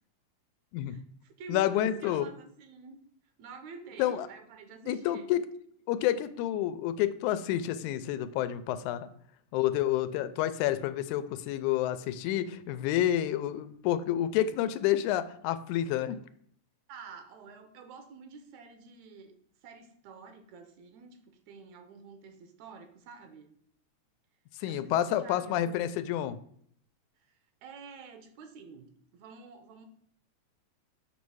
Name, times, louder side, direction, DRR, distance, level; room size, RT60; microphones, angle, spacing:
voice 1, 0.9-3.0 3.4-5.3 16.9-19.4 19.6-23.5 24.7-25.8 27.3-29.9, right 4 dB, 75° right, 7 dB, 2.0 m, -49 dB
voice 2, 1.5-2.3 4.0-4.3 4.9-5.4 5.9-9.1 9.5-16.2 24.6-26.4, left 12 dB, 90° left, 12 dB, 2.0 m, -29 dB
7.1 x 3.1 x 6.1 m, 0.63 s
omnidirectional pair, 3.4 m